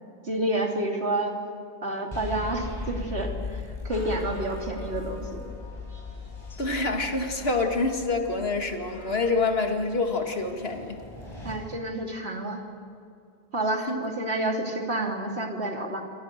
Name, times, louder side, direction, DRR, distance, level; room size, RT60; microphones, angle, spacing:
voice 1, 0.2-1.4 1.8-5.4 11.4-12.6 13.5-16.0, right 1 dB, 80° right, 2 dB, 3.2 m, -29 dB
sound 1, 2.1-11.5, left 3 dB, 25° left, 6.9 m, -38 dB
sound 2, 3.6-9.6, equal, 45° left, 3.7 m, -48 dB
voice 2, 6.6-11.0 13.9-14.1, left 3 dB, 70° left, 4 dB, 2.4 m, -27 dB
27.0 x 24.0 x 6.7 m, 2.5 s
omnidirectional pair, 1.1 m